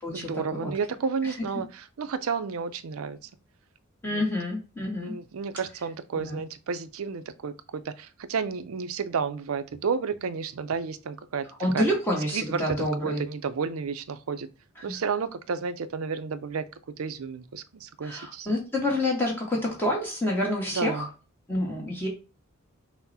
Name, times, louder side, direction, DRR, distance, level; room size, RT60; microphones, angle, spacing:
voice 1, 0.1-3.2 4.1-4.2 5.0-11.5 11.7-11.8 12.3-14.5 14.8-16.6 17.0-18.5 20.7-21.1, right 5 dB, 90° right, 0.5 m, -31 dB
voice 2, 4.0-5.1 6.1-6.4 11.6-13.2 14.8-15.0 18.0-21.1 21.5-22.1, left 1 dB, 10° left, 1.0 m, -28 dB
5.9 x 2.1 x 4.1 m
head